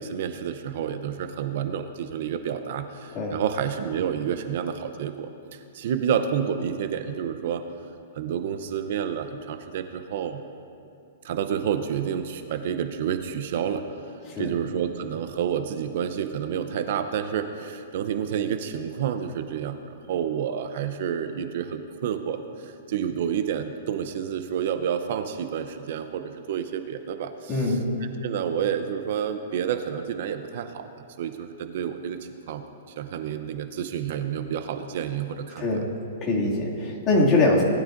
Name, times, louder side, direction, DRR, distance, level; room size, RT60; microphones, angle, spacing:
voice 1, 0.0-7.6 8.1-10.4 11.2-14.1 14.4-27.8 28.2-30.9 31.2-32.6 33.0-35.7, right 8 dB, 55° right, 8 dB, 0.6 m, -29 dB
voice 2, 27.5-27.8 35.6-35.9 36.2-37.6, left 2 dB, 25° left, -4 dB, 2.3 m, -23 dB
19.5 x 12.5 x 2.6 m, 2.6 s
hypercardioid pair, 160°, 0 cm